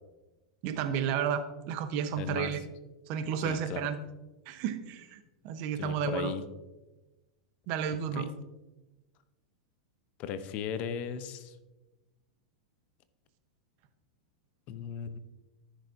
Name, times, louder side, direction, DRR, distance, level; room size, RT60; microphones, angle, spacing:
voice 1, 0.6-2.6 3.1-4.0 4.5-6.3 7.7-8.3, right 7 dB, 55° right, 9 dB, 0.9 m, -32 dB
voice 2, 2.2-2.5 3.4-3.9 5.7-6.4 8.1-8.3 10.2-11.5 14.7-15.2, left 7 dB, 45° left, 12 dB, 0.7 m, -37 dB
14.0 x 6.3 x 2.7 m, 1.1 s
hypercardioid pair, 100°, 3 cm